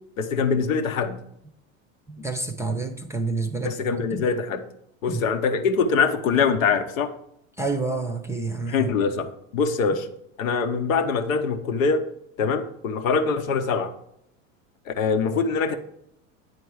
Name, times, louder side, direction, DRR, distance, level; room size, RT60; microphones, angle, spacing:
voice 1, 0.2-1.2 3.6-4.6 5.0-7.1 8.7-10.1 10.4-12.0 12.4-13.9 14.9-15.8, left 5 dB, 80° left, 8 dB, 1.0 m, -23 dB
voice 2, 2.1-4.3 5.1-5.2 7.6-8.9, right 3 dB, 5° right, 6 dB, 0.6 m, -29 dB
9.5 x 4.5 x 4.8 m, 0.76 s
hypercardioid pair, 90°, 40 cm